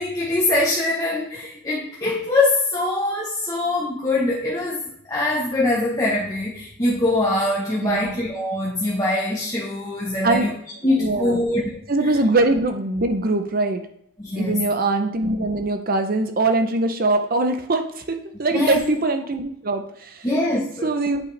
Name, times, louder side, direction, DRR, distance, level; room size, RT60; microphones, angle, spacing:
voice 1, 0.0-10.5 10.8-12.2 14.2-14.6 17.0-17.1 18.5-18.8 20.2-20.9, left 2 dB, 15° left, -4 dB, 0.9 m, -23 dB
voice 2, 7.8-8.2 10.2-10.5 11.0-11.4 11.9-13.9 14.4-20.2 20.8-21.3, right 2 dB, 45° right, 7 dB, 0.7 m, -22 dB
8.4 x 5.1 x 3.3 m, 0.70 s
head